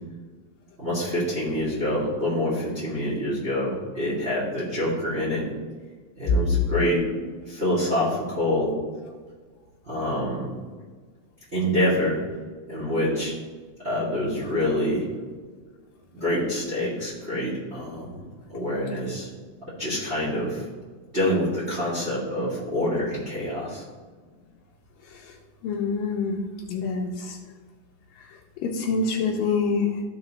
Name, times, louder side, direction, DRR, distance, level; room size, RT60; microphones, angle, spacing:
voice 1, 0.8-5.4 6.2-7.0 7.5-8.7 9.9-10.5 11.5-12.2 12.7-13.3 13.8-15.1 16.1-18.2 18.5-19.3 19.7-20.7 21.1-23.8, left 1 dB, 20° right, -8 dB, 2.1 m, -26 dB
voice 2, 25.6-26.4 26.7-27.4 28.2-30.0, left 4 dB, 75° left, -3 dB, 2.5 m, -26 dB
14.0 x 4.9 x 3.1 m, 1.5 s
omnidirectional pair, 4.1 m